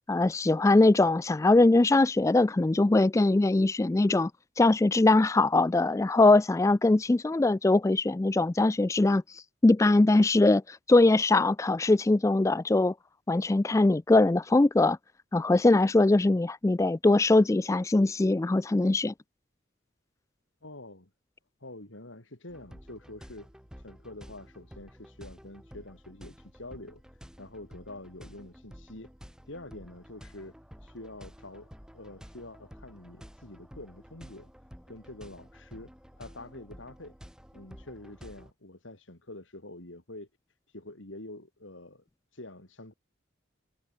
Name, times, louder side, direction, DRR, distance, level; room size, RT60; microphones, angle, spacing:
voice 1, 0.1-4.3 4.6-12.9 13.3-15.0 15.3-19.1, left 2 dB, 15° left, 0.3 m, -22 dB
voice 2, 20.6-21.1 21.6-23.5 23.8-27.0 27.4-29.1 29.5-30.5 30.8-34.5 34.9-35.9 36.2-37.1 37.5-40.3 40.7-42.0 42.3-42.9, left 2 dB, 90° left, 4.3 m, -46 dB
sound 1, 22.5-38.5, equal, 5° right, 6.9 m, -51 dB
head